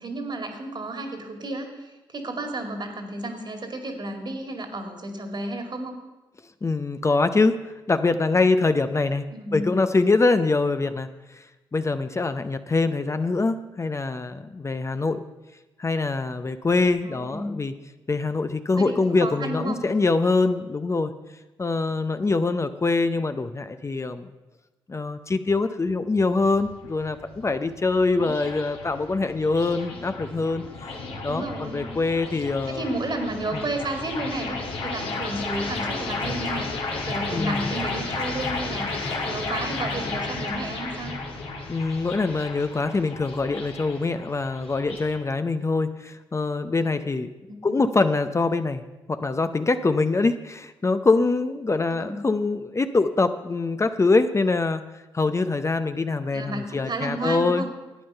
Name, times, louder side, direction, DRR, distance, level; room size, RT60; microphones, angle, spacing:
voice 1, 0.0-6.0 9.3-9.8 17.0-17.6 18.8-19.8 28.2-28.3 31.3-31.9 32.7-36.7 37.0-41.1 47.5-48.0 51.9-52.2 56.3-57.7, right 2 dB, 50° right, 5 dB, 2.2 m, -32 dB
voice 2, 6.6-9.2 9.5-11.4 11.7-15.2 15.8-17.7 18.1-21.1 21.6-24.3 24.9-30.6 31.2-32.9 33.5-33.6 37.3-37.7 41.7-47.3 47.6-54.8 55.1-57.6, left 3 dB, 30° left, 9 dB, 0.6 m, -24 dB
sound 1, 26.4-45.2, left 3 dB, 75° left, 1.9 m, -33 dB
11.0 x 8.7 x 5.5 m, 1.1 s
supercardioid pair, 50°, 10 cm